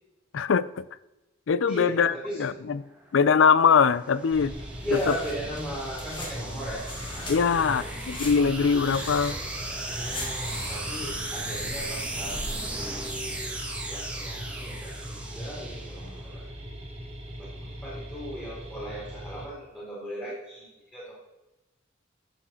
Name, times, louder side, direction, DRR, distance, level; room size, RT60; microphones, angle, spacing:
voice 1, 0.3-0.8 1.5-2.1 2.4-2.8 3.1-4.5 7.3-9.4, left 6 dB, 90° left, 0.5 m, -22 dB
voice 2, 1.7-2.5 4.8-7.9 9.9-12.5 12.7-16.4 17.6-21.2, equal, 10° left, 2.9 m, -37 dB
sound 1, 2.9-16.4, right 2 dB, 5° right, 1.8 m, -37 dB
sound 2, 4.3-19.5, equal, 30° right, 1.9 m, -41 dB
sound 3, 4.5-13.1, left 1 dB, 25° left, 2.0 m, -41 dB
11.5 x 7.1 x 4.4 m
head